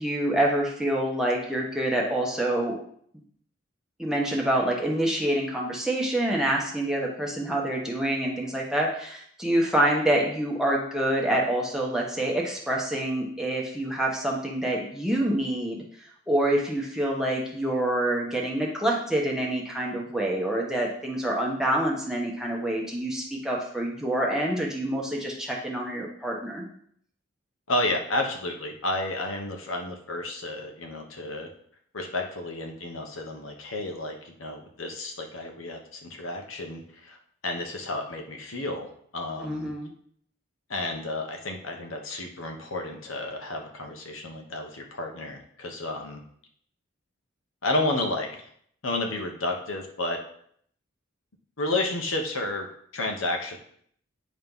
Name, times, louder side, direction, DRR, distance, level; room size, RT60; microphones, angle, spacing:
voice 1, 0.0-2.8 4.0-15.8 16.3-26.6 39.4-39.9, right 1 dB, 5° right, -3 dB, 1.1 m, -26 dB
voice 2, 27.7-31.5 31.9-37.2 37.4-39.7 40.7-46.2 47.6-48.5 48.8-50.2 51.6-52.7 52.9-53.6, left 2 dB, 80° left, 2 dB, 1.2 m, -31 dB
9.4 x 3.2 x 5.4 m, 0.64 s
head